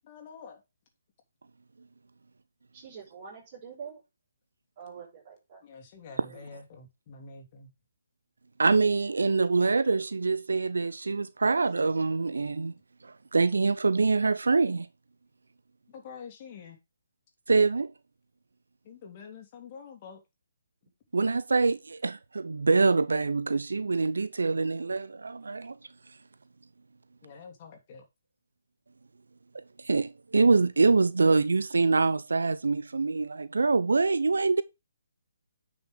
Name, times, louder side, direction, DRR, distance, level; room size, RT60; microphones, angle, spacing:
voice 1, 0.0-0.6 5.6-7.7 15.9-16.8 18.8-20.2 25.0-25.1 27.2-28.1, left 5 dB, 35° left, 3.1 m, -47 dB
voice 2, 2.7-4.0 4.8-5.6 6.1-6.4, right 6 dB, 35° right, 5.3 m, -45 dB
voice 3, 8.6-12.7 13.0-14.9 17.5-17.9 21.1-25.8 29.5-34.6, right 4 dB, 75° right, 0.7 m, -25 dB
9.7 x 6.1 x 3.6 m
figure-of-eight pair, 145°, 0 cm